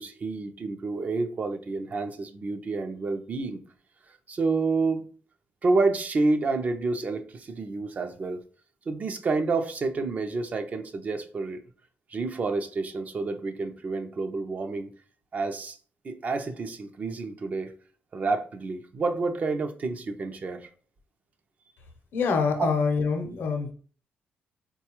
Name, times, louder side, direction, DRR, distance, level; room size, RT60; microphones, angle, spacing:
voice 1, 0.0-3.6 4.3-5.0 5.6-8.4 8.9-11.6 12.1-14.9 15.3-15.8 16.0-17.7 18.1-20.7 22.6-22.7, right 3 dB, 45° right, 7 dB, 0.5 m, -29 dB
voice 2, 22.1-23.7, left 5 dB, 70° left, 5 dB, 0.7 m, -25 dB
3.9 x 2.3 x 2.9 m, 0.41 s
cardioid pair, 95°, 4 cm